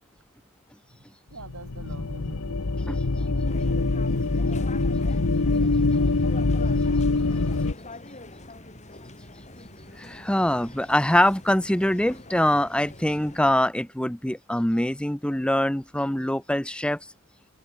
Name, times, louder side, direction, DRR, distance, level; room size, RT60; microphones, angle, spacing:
voice 1, 1.3-5.3 9.7-9.9, right 2 dB, 80° right, 4.9 m, -48 dB
sound 1, 1.4-7.7, left 3 dB, 75° left, 1.0 m, -24 dB
sound 2, 3.4-13.5, left 2 dB, 35° left, 5.1 m, -44 dB
voice 2, 10.0-17.0, left 1 dB, 5° left, 0.8 m, -24 dB
head